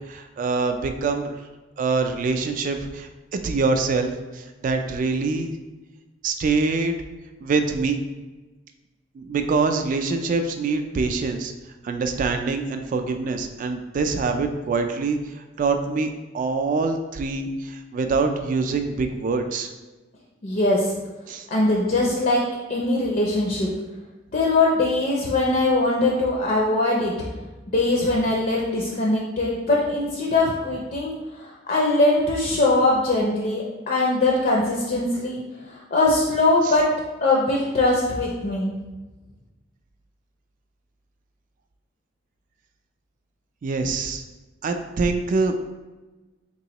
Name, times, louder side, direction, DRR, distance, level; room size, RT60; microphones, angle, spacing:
voice 1, 0.1-1.4 1.8-5.5 6.2-7.0 7.4-8.0 9.2-11.5 11.8-16.1 16.3-19.7 21.3-21.5 36.7-36.8 43.6-44.2 44.6-45.5, right 4 dB, 45° right, 6 dB, 0.3 m, -25 dB
voice 2, 20.4-20.9 21.5-22.4 22.7-23.7 24.3-27.1 27.7-35.4 35.7-36.9 37.2-38.7, left 2 dB, 45° left, -2 dB, 0.5 m, -21 dB
3.7 x 3.0 x 2.9 m, 1.2 s
head